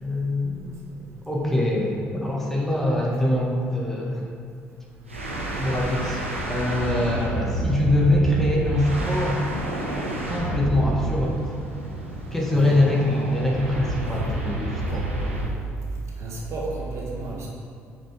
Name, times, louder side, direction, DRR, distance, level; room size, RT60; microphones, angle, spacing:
voice 1, 0.0-0.5 1.3-4.3 5.6-9.5 10.3-11.4 12.3-15.1, left 1 dB, 5° left, -3 dB, 1.6 m, -23 dB
sound 1, 5.1-15.6, right 1 dB, 85° right, 0.8 m, -29 dB
voice 2, 12.5-12.8 13.9-14.3 16.2-17.5, right 2 dB, 45° right, -3 dB, 1.5 m, -33 dB
6.2 x 6.0 x 5.0 m, 2.3 s
figure-of-eight pair, 50°, 6 cm